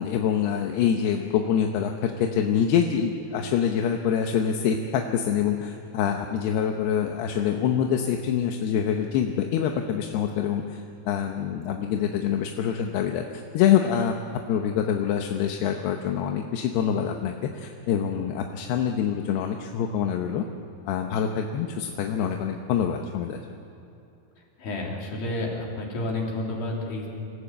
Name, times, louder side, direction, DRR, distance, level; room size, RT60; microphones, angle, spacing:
voice 1, 0.0-14.2 14.5-20.5 20.8-23.6, left 8 dB, 85° left, 4 dB, 3.0 m, -25 dB
voice 2, 24.6-27.1, left 2 dB, 65° left, -2 dB, 5.1 m, -30 dB
25.5 x 15.0 x 8.6 m, 2.9 s
omnidirectional pair, 4.6 m